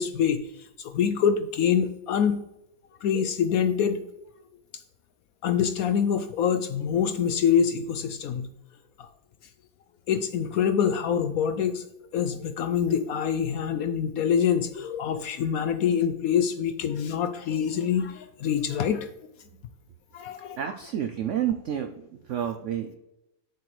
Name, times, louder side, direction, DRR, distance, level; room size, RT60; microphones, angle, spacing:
voice 1, 0.0-2.4 3.0-4.0 5.4-8.5 9.0-9.1 10.1-11.8 12.1-19.1 20.1-20.6, left 8 dB, 70° left, 10 dB, 0.8 m, -25 dB
voice 2, 20.6-22.9, right 10 dB, 80° right, 7 dB, 0.6 m, -30 dB
8.1 x 6.9 x 3.2 m, 0.86 s
omnidirectional pair, 1.8 m